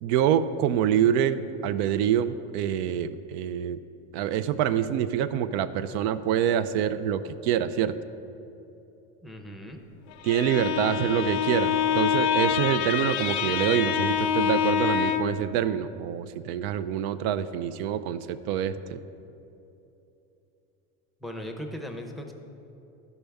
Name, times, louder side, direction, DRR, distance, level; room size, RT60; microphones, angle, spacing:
voice 1, 0.0-3.8 4.1-7.9 10.2-19.0, right 9 dB, 70° right, 13 dB, 0.5 m, -26 dB
voice 2, 9.2-9.8 21.2-22.3, equal, ahead, 3 dB, 0.6 m, -38 dB
Bowed string instrument, 10.1-15.5, left 9 dB, 90° left, 0.5 m, -26 dB
13.0 x 5.4 x 3.4 m, 2.9 s
supercardioid pair, 125°, 32 cm